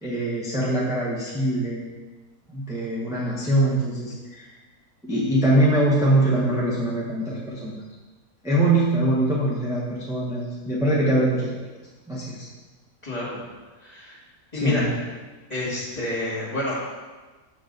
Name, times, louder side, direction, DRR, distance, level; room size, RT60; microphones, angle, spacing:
voice 1, 0.0-1.8 2.5-4.5 5.0-7.7 8.4-11.5 12.1-12.4 14.5-14.9, right 1 dB, 5° right, -7 dB, 0.9 m, -23 dB
voice 2, 13.0-13.4 13.8-14.2 14.5-14.9 15.5-16.7, left 1 dB, 25° left, -7 dB, 2.0 m, -28 dB
7.0 x 4.7 x 3.9 m, 1.3 s
omnidirectional pair, 1.6 m